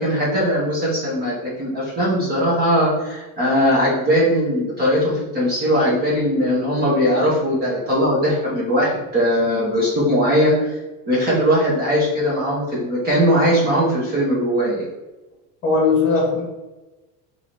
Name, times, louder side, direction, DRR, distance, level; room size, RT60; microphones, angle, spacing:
voice 1, 0.0-10.8 11.1-14.9, equal, 20° right, -6 dB, 0.8 m, -19 dB
voice 2, 15.6-16.4, left 4 dB, 30° left, -3 dB, 1.1 m, -18 dB
3.7 x 2.7 x 2.9 m, 1.1 s
cardioid pair, 170°, 41 cm